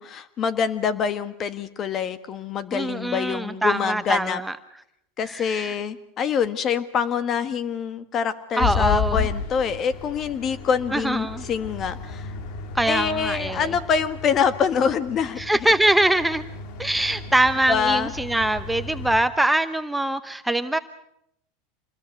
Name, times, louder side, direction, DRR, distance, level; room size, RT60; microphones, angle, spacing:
voice 1, 0.0-4.4 5.2-12.3 12.9-15.4 17.7-18.1, left 6 dB, 35° left, 13 dB, 1.5 m, -25 dB
voice 2, 2.7-4.6 5.3-5.7 8.6-9.3 10.9-11.4 12.7-13.7 15.4-16.4 16.8-20.8, right 1 dB, 5° right, 9 dB, 0.9 m, -23 dB
sound 1, 8.6-19.2, left 5 dB, 60° left, 2.2 m, -33 dB
26.5 x 21.0 x 6.6 m, 0.76 s
supercardioid pair, 110°, 0 cm